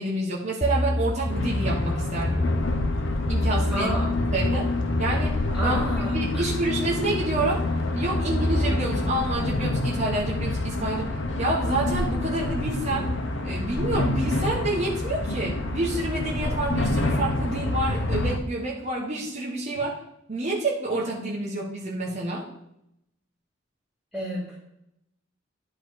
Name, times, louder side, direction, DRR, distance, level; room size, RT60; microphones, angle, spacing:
voice 1, 0.0-2.4 3.3-3.9 4.3-4.7 5.0-5.8 6.1-7.6 7.9-13.1 13.4-20.0 20.3-22.5, right 2 dB, 35° right, -3 dB, 1.4 m, -28 dB
sound 1, 0.6-5.9, left 1 dB, 25° left, 0.6 m, -29 dB
sound 2, 1.3-18.4, left 2 dB, 80° left, 0.9 m, -27 dB
voice 2, 3.7-4.1 5.5-6.5 24.1-24.5, right 1 dB, ahead, -9 dB, 2.5 m, -31 dB
10.5 x 3.6 x 4.7 m, 0.78 s
head